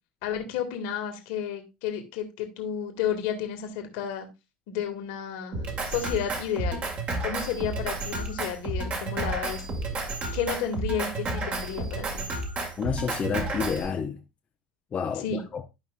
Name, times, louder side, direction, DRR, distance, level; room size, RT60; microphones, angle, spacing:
voice 1, 0.2-4.3 4.7-6.8 7.2-9.6 10.3-12.2 15.2-15.4, left 8 dB, 60° left, 1.7 m, -32 dB
Drum kit, 5.5-13.9, right 2 dB, 40° right, 2.0 m, -31 dB
voice 2, 12.8-14.2 14.9-15.6, left 6 dB, 30° left, 0.7 m, -30 dB
12.0 x 5.3 x 2.5 m
figure-of-eight pair, 70°, 4 cm